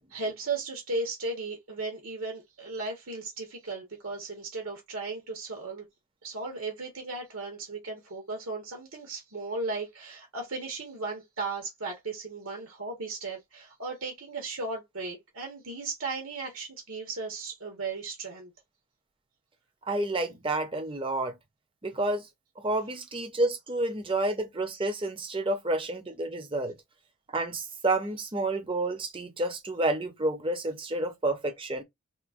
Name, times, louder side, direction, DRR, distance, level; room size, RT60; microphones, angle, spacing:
voice 1, 0.1-5.9 6.2-18.5, right 3 dB, 75° right, 1.2 m, -36 dB
voice 2, 19.9-21.4 21.8-22.3 22.6-26.8 27.3-31.8, right 2 dB, 25° right, 0.7 m, -29 dB
4.2 x 2.2 x 2.5 m
head